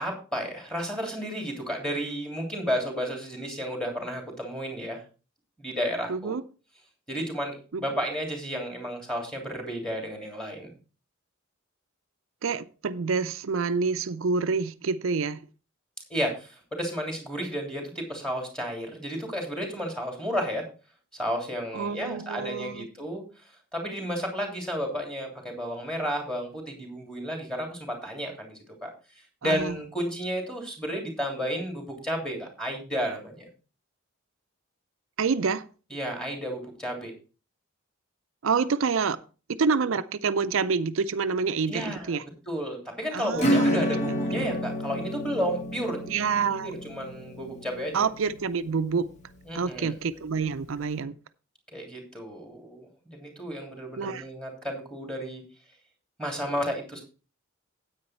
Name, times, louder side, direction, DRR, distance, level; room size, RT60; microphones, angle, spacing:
voice 1, 0.0-5.0 5.6-6.3 7.1-10.7 16.1-20.6 21.1-23.2 23.7-28.9 29.4-33.5 35.9-37.1 41.7-42.2 42.5-46.0 46.6-48.1 49.5-50.0 51.7-55.4 56.2-57.0, equal, 5° left, 3.1 m, -32 dB
voice 2, 6.1-6.4 7.7-8.0 12.4-15.4 21.7-22.9 29.4-29.7 35.2-35.6 38.4-39.2 39.6-42.2 43.1-44.5 46.1-46.7 47.9-49.1 49.5-51.1 54.0-54.2, right 5 dB, 75° right, 0.5 m, -27 dB
Acoustic guitar / Strum, 43.4-49.6, equal, 35° left, 1.5 m, -30 dB
9.5 x 8.7 x 4.4 m
head